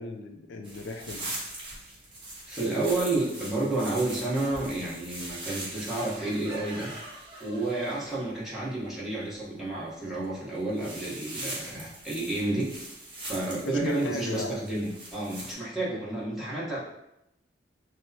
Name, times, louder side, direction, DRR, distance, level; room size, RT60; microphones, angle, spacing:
voice 1, 0.0-1.3 13.6-14.5, left 2 dB, 85° left, 5 dB, 0.4 m, -36 dB
sound 1, 0.6-8.3 10.1-10.2 10.5-15.5, right 1 dB, 25° right, 0.9 m, -41 dB
voice 2, 2.5-6.9 7.4-12.7 13.2-16.8, right 2 dB, ahead, -8 dB, 1.0 m, -30 dB
6.1 x 2.1 x 2.8 m, 0.82 s
head